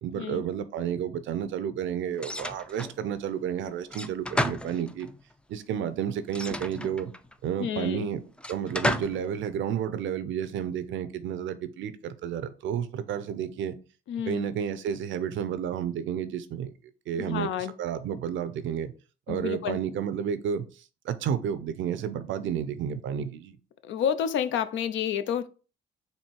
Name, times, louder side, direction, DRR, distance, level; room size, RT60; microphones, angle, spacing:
voice 1, 0.0-5.1 5.5-7.1 7.4-8.2 8.5-13.8 14.3-16.7 17.1-18.9 19.3-23.6, right 8 dB, 75° right, 0.5 m, -31 dB
sound 1, 2.2-3.0 3.9-5.2 6.3-7.3 8.4-9.3, left 1 dB, 5° left, 0.3 m, -32 dB
voice 2, 7.6-8.1 14.1-14.5 17.2-17.7 19.3-19.8 23.8-25.5, left 9 dB, 70° left, 0.5 m, -29 dB
4.4 x 2.7 x 4.5 m
cardioid pair, 90°, 20 cm